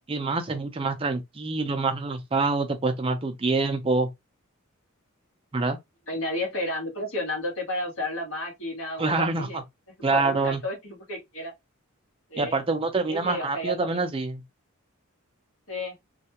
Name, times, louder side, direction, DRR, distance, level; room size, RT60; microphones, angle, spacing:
voice 1, 0.1-4.1 5.5-5.8 9.0-9.6 10.0-10.6 12.4-14.4, right 3 dB, 25° right, 0.4 m, -26 dB
voice 2, 6.1-9.6 10.1-11.5 12.3-12.5 13.1-14.0 15.7-15.9, left 1 dB, 65° left, 1.5 m, -32 dB
3.2 x 2.3 x 2.8 m
head